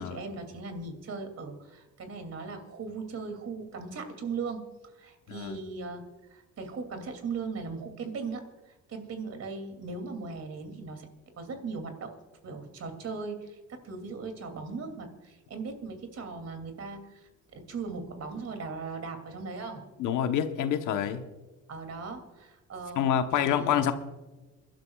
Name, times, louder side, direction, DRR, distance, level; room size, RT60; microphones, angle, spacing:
voice 1, 0.0-6.0 6.3-11.1 11.4-12.1 12.4-17.2 17.5-19.8 21.7-23.9, right 4 dB, 55° right, 6 dB, 2.7 m, -38 dB
voice 2, 20.0-21.2 23.0-23.9, left 9 dB, 85° left, 8 dB, 1.1 m, -27 dB
28.5 x 12.0 x 2.4 m, 1.2 s
cardioid pair, 90°, 30 cm